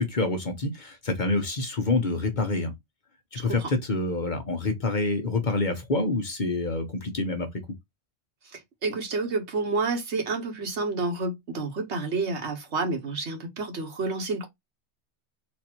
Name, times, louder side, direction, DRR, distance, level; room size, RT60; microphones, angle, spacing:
voice 1, 0.0-2.7 3.3-7.5, left 3 dB, 45° left, 0.9 m, -27 dB
voice 2, 8.5-14.5, right 3 dB, 70° right, 1.5 m, -29 dB
4.2 x 2.6 x 4.4 m
omnidirectional pair, 1.2 m